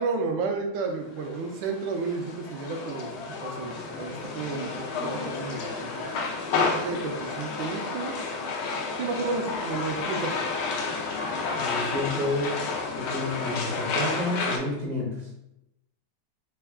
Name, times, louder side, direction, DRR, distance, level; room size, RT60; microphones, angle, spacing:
voice 1, 0.0-3.1 3.4-5.9 6.5-8.2 9.0-10.4, right 4 dB, 75° right, 3 dB, 1.3 m, -32 dB
sound 1, 1.1-14.6, left 4 dB, 90° left, 1.5 m, -31 dB
voice 2, 11.6-15.3, left 1 dB, 55° right, -4 dB, 1.0 m, -30 dB
4.3 x 2.2 x 3.4 m, 0.83 s
omnidirectional pair, 2.2 m